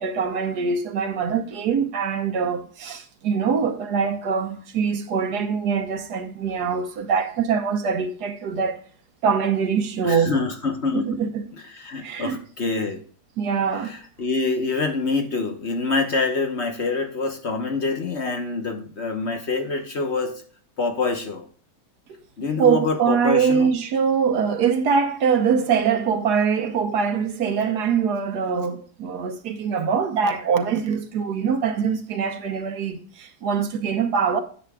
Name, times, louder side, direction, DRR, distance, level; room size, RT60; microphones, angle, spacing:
voice 1, 0.0-8.8 9.2-10.4 10.9-11.4 12.0-12.4 13.4-14.0 22.6-34.4, right 6 dB, 70° right, 1.5 m, -23 dB
voice 2, 10.0-11.2 11.5-13.0 13.8-20.4 20.8-21.5 22.4-23.7, left 4 dB, 45° left, 1.2 m, -26 dB
10.0 x 7.5 x 2.3 m
omnidirectional pair, 1.8 m